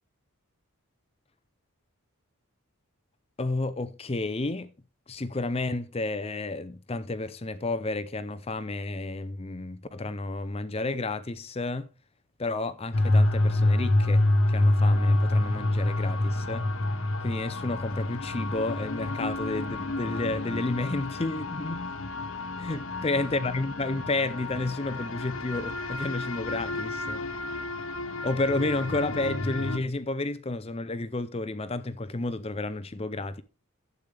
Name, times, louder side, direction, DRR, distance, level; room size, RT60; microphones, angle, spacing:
voice 1, 3.4-4.7 5.1-11.9 12.4-16.7 17.2-21.9 22.6-27.3 28.2-33.4, left 2 dB, 25° left, 0.6 m, -31 dB
sound 1, 12.9-29.8, left 2 dB, 65° left, 1.3 m, -28 dB
12.0 x 8.3 x 3.4 m
head